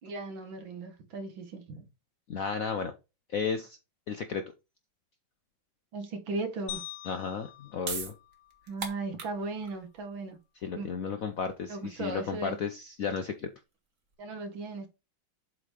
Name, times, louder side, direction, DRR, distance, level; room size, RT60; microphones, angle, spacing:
voice 1, 0.0-1.9 5.9-6.8 8.7-10.4 10.8-10.9 11.7-12.6 14.2-14.9, right 3 dB, 70° right, 2.1 m, -37 dB
voice 2, 2.3-2.9 3.3-3.8 4.1-4.4 7.1-8.1 10.6-13.5, left 6 dB, 65° left, 0.8 m, -33 dB
sound 1, 6.7-9.0, left 14 dB, 85° left, 2.0 m, -45 dB
sound 2, 7.4-14.1, right 5 dB, 40° right, 1.7 m, -43 dB
7.8 x 3.7 x 4.8 m
omnidirectional pair, 2.3 m